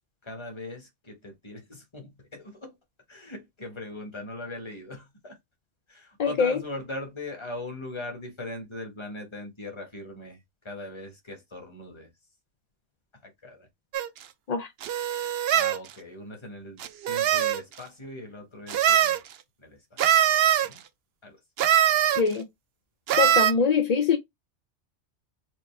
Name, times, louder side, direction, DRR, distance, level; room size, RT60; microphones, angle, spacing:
voice 1, 0.2-2.8 3.1-5.4 5.9-10.4 10.6-12.1 13.2-13.7 15.5-19.2 19.6-20.0 20.6-20.8 21.2-21.4, left 2 dB, 25° left, 1.2 m, -40 dB
voice 2, 6.2-6.6 14.5-14.7 22.2-22.5 23.1-24.2, left 6 dB, 55° left, 0.5 m, -23 dB
sound 1, 13.9-14.1 14.8-15.8 16.8-17.6 18.7-19.2 20.0-20.7 21.6-22.2 23.1-23.5, right 11 dB, 65° right, 0.7 m, -22 dB
4.7 x 2.5 x 3.2 m
omnidirectional pair, 1.2 m